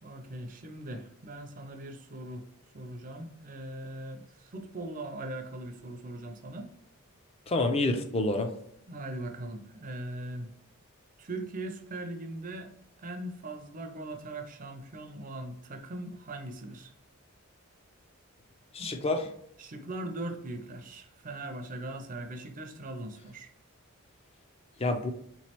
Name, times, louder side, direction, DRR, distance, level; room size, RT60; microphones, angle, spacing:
voice 1, 0.0-2.5 2.7-6.7 8.9-10.5 11.2-12.7 13.0-16.9 18.8-19.3 19.6-23.5, right 1 dB, 40° right, 6 dB, 0.5 m, -40 dB
voice 2, 7.5-8.5 18.7-19.3 24.8-25.1, left 2 dB, 25° left, 6 dB, 0.4 m, -28 dB
3.6 x 3.0 x 2.8 m, 0.70 s
head